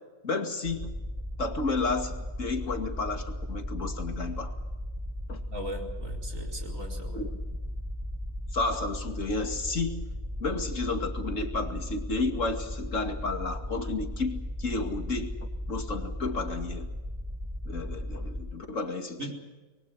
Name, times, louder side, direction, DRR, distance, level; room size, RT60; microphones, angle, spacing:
voice 1, 0.2-0.9 1.4-4.5 5.3-5.4 7.1-7.4 8.5-10.0 10.4-15.4 15.7-16.9 17.7-19.3, left 3 dB, 65° left, 5 dB, 2.7 m, -32 dB
sound 1, 0.6-18.4, left 1 dB, 25° right, 5.2 m, -36 dB
voice 2, 5.5-7.3 19.2-19.3, right 1 dB, 70° right, 1 dB, 4.9 m, -38 dB
24.5 x 23.0 x 6.4 m, 1.2 s
omnidirectional pair, 1.4 m